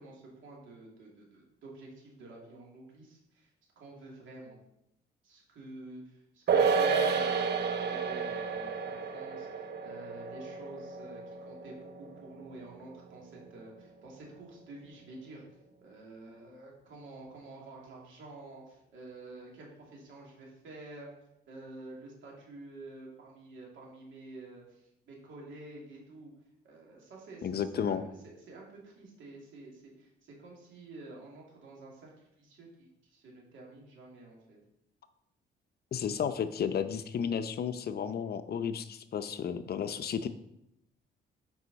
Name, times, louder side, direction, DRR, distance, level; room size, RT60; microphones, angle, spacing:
voice 1, 0.0-3.5 3.8-4.6 5.2-15.4 15.8-21.1 21.5-26.3 26.6-34.6 39.7-40.0, right 2 dB, 75° right, -2 dB, 2.6 m, -49 dB
sound 1, 6.5-13.1 13.4-13.5, right 5 dB, 60° right, 0.8 m, -31 dB
voice 2, 27.4-28.0 35.9-40.3, left 7 dB, 50° left, 11 dB, 0.6 m, -33 dB
8.0 x 5.4 x 4.1 m, 0.81 s
cardioid pair, 90°, 20 cm